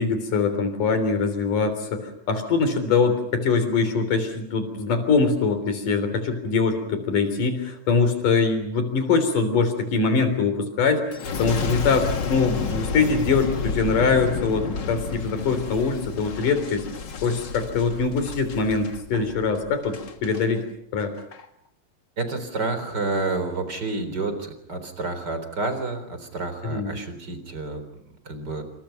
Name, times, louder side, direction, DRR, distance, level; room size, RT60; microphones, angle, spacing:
voice 1, 0.0-16.8 17.2-20.6 20.9-21.1 26.6-26.9, left 4 dB, 70° left, 9 dB, 5.0 m, -23 dB
Boom, 11.1-20.4 21.0-21.4, left 5 dB, 45° left, 1.6 m, -31 dB
voice 2, 22.2-28.6, right 3 dB, 30° right, 9 dB, 4.3 m, -29 dB
28.5 x 27.0 x 5.8 m, 0.72 s
omnidirectional pair, 3.9 m